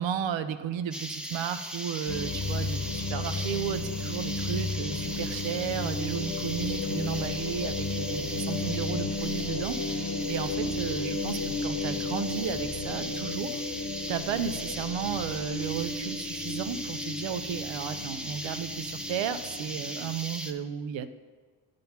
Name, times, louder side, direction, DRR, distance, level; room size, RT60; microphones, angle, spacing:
voice 1, 0.0-13.6 14.1-21.1, right 8 dB, 75° right, 10 dB, 0.7 m, -34 dB
sound 1, 0.9-20.5, equal, ahead, 0.7 m, -38 dB
sound 2, 2.1-20.1, left 3 dB, 55° left, 1.0 m, -34 dB
10.5 x 3.8 x 5.9 m, 1.5 s
cardioid pair, 70°, 47 cm